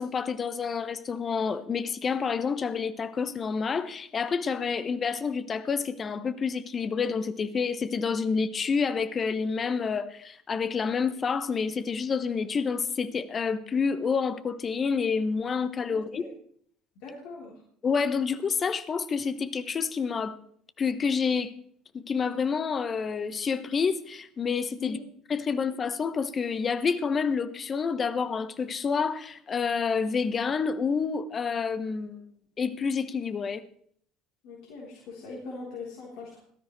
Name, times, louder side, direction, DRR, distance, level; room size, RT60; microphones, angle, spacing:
voice 1, 0.0-16.3 17.8-20.4 20.8-21.5 21.9-25.0 25.3-32.2 32.6-33.6, left 5 dB, 35° left, 1.2 m, -28 dB
voice 2, 15.9-16.3 17.0-17.5 24.8-25.0 34.4-36.4, left 4 dB, 60° left, 3.8 m, -41 dB
18.5 x 13.5 x 3.3 m
figure-of-eight pair, 60°, 0 cm